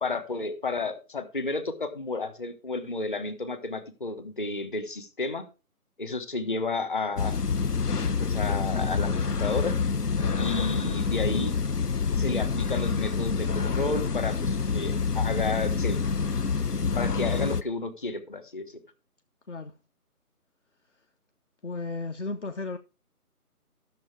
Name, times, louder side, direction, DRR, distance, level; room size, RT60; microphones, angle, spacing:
voice 1, 0.0-5.4 6.0-7.4 8.2-9.8 10.4-11.5 12.2-16.0 17.0-18.8, left 3 dB, 35° left, 1.3 m, -32 dB
sound 1, 7.2-17.6, left 5 dB, 90° left, 0.9 m, -27 dB
voice 2, 21.6-22.8, left 3 dB, 50° left, 0.8 m, -34 dB
12.5 x 6.7 x 4.7 m
figure-of-eight pair, 160°, 45 cm